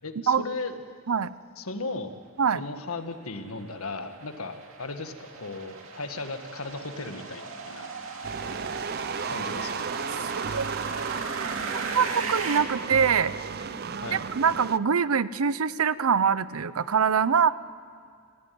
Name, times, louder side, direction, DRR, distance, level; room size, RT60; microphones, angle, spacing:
voice 1, 0.0-0.8 1.6-2.1 2.5-7.9 9.3-9.7 14.0-14.2, left 3 dB, 85° left, 7 dB, 1.8 m, -36 dB
sound 1, 3.0-12.6, right 4 dB, 70° right, 2.5 m, -37 dB
sound 2, 7.3-14.6, right 1 dB, 55° left, 4.0 m, -50 dB
sound 3, 8.2-14.8, right 6 dB, 45° right, 0.5 m, -34 dB
voice 2, 11.9-13.3 14.1-17.5, right 6 dB, 85° right, 17 dB, 0.6 m, -23 dB
28.5 x 16.0 x 9.4 m, 2.2 s
head